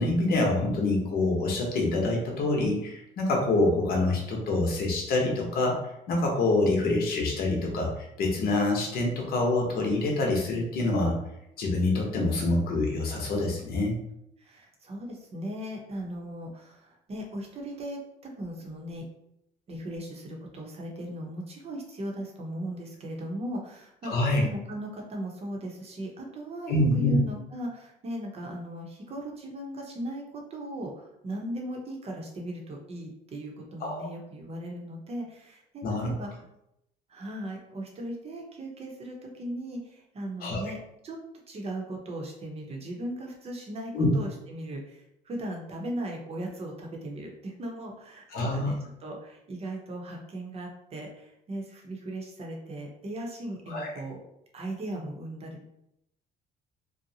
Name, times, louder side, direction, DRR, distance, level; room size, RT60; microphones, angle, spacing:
voice 1, 0.0-5.8 6.1-7.9 8.2-11.2 11.6-13.9 24.1-24.4 26.7-27.2 33.8-34.1 35.8-36.1 40.4-40.7 43.9-44.1 48.3-48.7 53.7-53.9, left 2 dB, 65° left, 0 dB, 0.8 m, -26 dB
voice 2, 14.4-19.0 19.7-36.3 37.1-40.8 41.0-41.2 41.5-54.2 54.5-55.7, right 1 dB, 35° right, 0 dB, 0.7 m, -38 dB
2.6 x 2.1 x 2.7 m, 0.80 s
cardioid pair, 110°, 17 cm